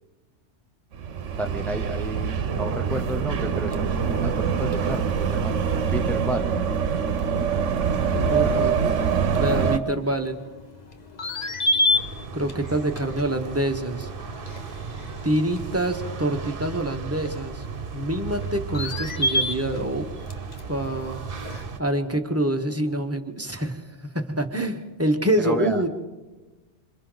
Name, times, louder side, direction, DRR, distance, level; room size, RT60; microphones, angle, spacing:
sound 1, 0.9-9.8, right 7 dB, 90° right, 1.2 m, -24 dB
voice 1, 1.4-5.5 5.8-6.6 8.1-9.0 9.5-9.7 25.4-25.8, equal, ahead, 4 dB, 0.4 m, -32 dB
sound 2, 3.0-21.6, left 2 dB, 40° left, 1.2 m, -33 dB
voice 2, 8.3-8.8 9.4-10.4 12.3-14.1 15.2-17.6 17.9-20.1 20.7-21.2 21.8-23.8 24.1-25.9, right 1 dB, 15° right, 4 dB, 1.1 m, -26 dB
sound 3, 11.9-21.8, right 6 dB, 50° right, 1.2 m, -35 dB
27.0 x 26.5 x 4.0 m, 1.2 s
omnidirectional pair, 1.2 m